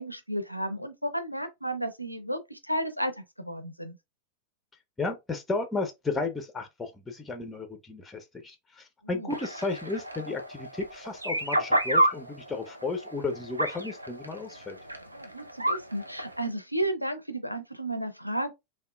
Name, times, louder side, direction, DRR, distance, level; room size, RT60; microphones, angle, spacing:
voice 1, 0.0-4.0 9.0-9.4 15.1-18.5, right 1 dB, 90° left, 0.5 m, -33 dB
voice 2, 5.0-14.8, left 3 dB, 10° left, 0.5 m, -33 dB
sound 1, 9.3-16.5, right 1 dB, 85° right, 0.4 m, -31 dB
3.5 x 2.3 x 2.3 m
figure-of-eight pair, 90°, 0 cm